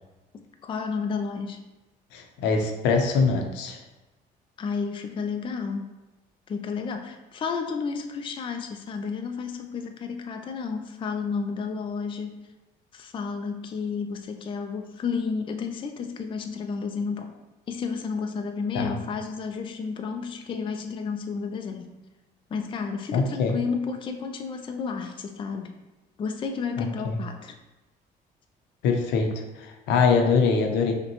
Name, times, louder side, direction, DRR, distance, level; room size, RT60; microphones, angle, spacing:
voice 1, 0.3-1.6 4.6-5.9 6.5-12.5 12.9-17.4 17.7-21.9 22.5-25.8 26.2-27.6, left 5 dB, 30° left, 5 dB, 0.4 m, -31 dB
voice 2, 2.1-3.8 18.7-19.0 23.1-23.6 26.8-27.2 28.8-30.9, left 5 dB, 85° left, 3 dB, 0.6 m, -23 dB
5.3 x 2.2 x 2.9 m, 1.1 s
cardioid pair, 110°, 17 cm